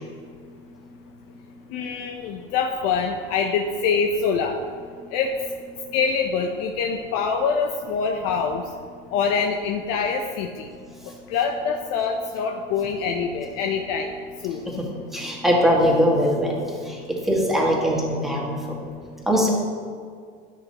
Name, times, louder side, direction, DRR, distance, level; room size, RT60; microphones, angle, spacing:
voice 1, 1.7-4.6 5.1-5.3 5.9-8.6 9.1-10.7 11.3-14.1 14.4-14.6, left 5 dB, 55° left, 3 dB, 0.8 m, -25 dB
voice 2, 15.1-18.6 19.3-19.5, equal, ahead, -3 dB, 1.8 m, -21 dB
13.0 x 5.9 x 3.0 m, 2.1 s
supercardioid pair, 110°, 29 cm